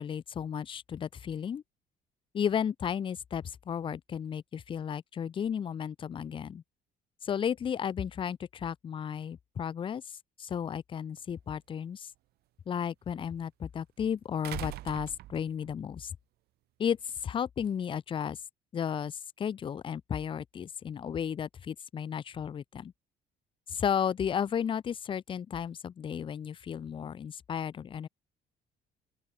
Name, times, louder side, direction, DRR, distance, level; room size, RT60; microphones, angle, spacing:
voice 1, 0.0-1.6 2.3-6.6 7.2-10.0 10.4-12.1 12.7-16.1 16.8-18.4 18.7-22.9 23.7-28.1, left 8 dB, 30° left, 0.4 m, -33 dB
sound 1, 11.2-11.3 14.4-15.7 17.1-17.2, right 17 dB, 70° right, 0.6 m, -41 dB
open air
cardioid pair, 110°, 17 cm